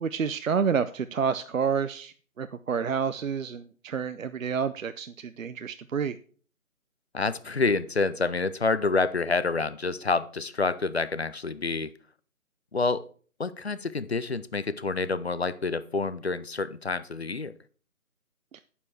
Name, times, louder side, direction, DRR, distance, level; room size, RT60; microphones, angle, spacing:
voice 1, 0.0-6.2 18.5-18.6, right 6 dB, 65° right, 12 dB, 0.6 m, -29 dB
voice 2, 7.1-11.9 12.7-13.0 13.4-17.6, left 3 dB, 50° left, 15 dB, 0.5 m, -28 dB
8.7 x 6.9 x 4.5 m, 0.42 s
figure-of-eight pair, 160°, 43 cm